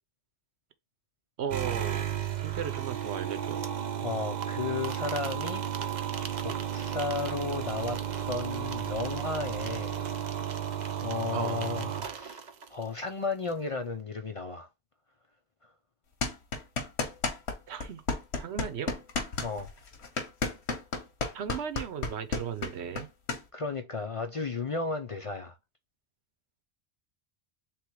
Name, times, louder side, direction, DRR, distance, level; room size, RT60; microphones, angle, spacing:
voice 1, 1.4-2.1 2.4-3.6 11.3-11.6 17.7-18.0 18.4-18.9 21.3-23.1, right 8 dB, 85° right, 1.0 m, -36 dB
sound 1, 1.5-12.9, right 9 dB, 50° right, 0.7 m, -33 dB
voice 2, 4.0-5.6 6.4-8.0 8.3-10.0 11.0-12.4 12.7-14.7 19.4-19.7 23.5-25.6, left 4 dB, 45° left, 0.5 m, -34 dB
sound 2, 16.2-17.6 17.8-23.4, left 4 dB, 85° left, 1.3 m, -32 dB
3.5 x 3.0 x 4.5 m
omnidirectional pair, 1.1 m